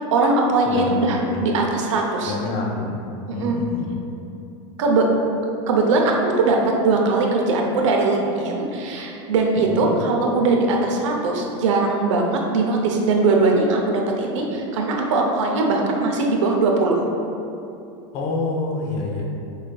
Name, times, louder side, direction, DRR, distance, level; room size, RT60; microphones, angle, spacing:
voice 1, 0.1-2.4 3.3-3.6 4.8-5.1 5.7-6.6 6.8-17.0, right 3 dB, 85° right, 1 dB, 0.6 m, -20 dB
voice 2, 0.7-1.4 2.2-3.0 3.3-3.9 9.7-9.9 18.1-19.2, left 2 dB, 35° left, -1 dB, 0.5 m, -27 dB
4.7 x 3.2 x 2.2 m, 2.7 s
supercardioid pair, 165°, 15 cm